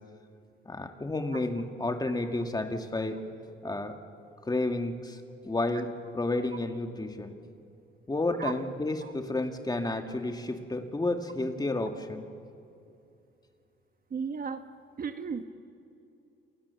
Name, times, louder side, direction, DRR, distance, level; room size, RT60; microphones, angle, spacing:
voice 1, 0.7-3.2 3.6-4.0 4.5-5.2 5.4-7.4 8.1-12.3, left 2 dB, 20° left, 5 dB, 2.3 m, -31 dB
voice 2, 14.1-14.6 15.0-15.4, right 6 dB, 45° right, 8 dB, 1.6 m, -34 dB
29.5 x 27.0 x 7.2 m, 2.6 s
cardioid pair, 90°, 20 cm